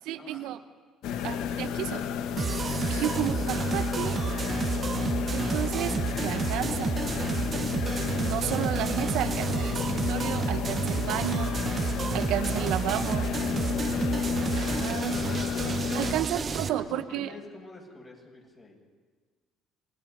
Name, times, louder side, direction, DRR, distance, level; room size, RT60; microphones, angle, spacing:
voice 1, 0.1-0.6 1.2-2.1 2.9-4.2 5.3-5.9 6.2-7.0 8.2-11.5 12.1-13.3 14.6-15.2 15.9-17.3, right 12 dB, 70° right, 11 dB, 0.8 m, -32 dB
sound 1, 1.0-16.1, left 7 dB, 70° left, 1.0 m, -31 dB
sound 2, 2.4-16.7, right 6 dB, 40° right, 0.9 m, -31 dB
voice 2, 3.4-3.7 16.3-18.8, left 2 dB, 35° left, -1 dB, 7.6 m, -48 dB
28.0 x 19.5 x 5.4 m, 1.5 s
supercardioid pair, 75°, 0 cm